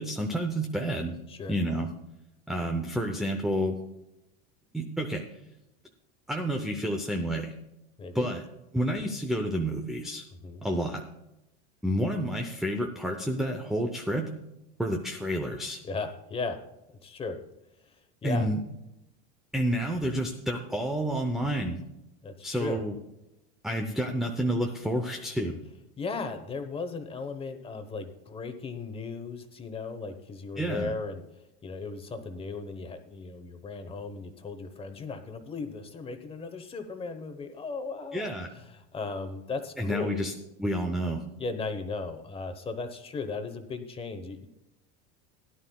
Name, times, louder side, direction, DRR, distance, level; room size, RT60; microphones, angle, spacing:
voice 1, 0.0-1.2 1.5-1.9 2.5-3.8 4.7-5.2 6.3-7.5 8.1-8.5 8.7-10.3 10.6-11.0 11.8-14.3 14.8-15.8 18.2-18.6 19.5-21.8 22.4-22.9 23.6-25.6 30.6-30.9 38.1-38.5 39.8-40.3 40.6-41.2, equal, ahead, 4 dB, 0.6 m, -29 dB
voice 2, 10.3-10.6 15.8-16.6 17.0-17.4 17.9-18.0 18.2-18.5 22.2-22.8 26.0-31.2 31.6-38.3 38.5-40.3 41.4-44.5, left 4 dB, 15° left, 9 dB, 1.1 m, -36 dB
16.5 x 11.0 x 2.3 m, 0.90 s
supercardioid pair, 150°, 35 cm